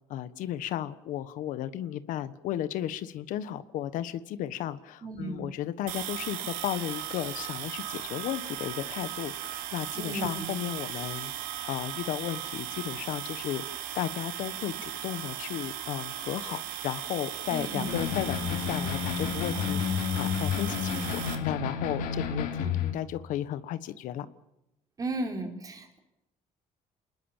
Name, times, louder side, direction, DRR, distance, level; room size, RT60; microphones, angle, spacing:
voice 1, 0.1-11.3 11.6-24.3, left 12 dB, 75° left, 14 dB, 1.3 m, -34 dB
voice 2, 5.0-5.5 10.0-10.5 17.5-18.0 25.0-26.0, right 2 dB, 25° right, 4 dB, 4.0 m, -35 dB
sound 1, 5.9-21.3, right 11 dB, 85° right, 3.4 m, -37 dB
sound 2, 17.9-22.9, left 7 dB, 90° left, 4.3 m, -31 dB
28.5 x 20.5 x 7.3 m, 0.89 s
cardioid pair, 155°, 14 cm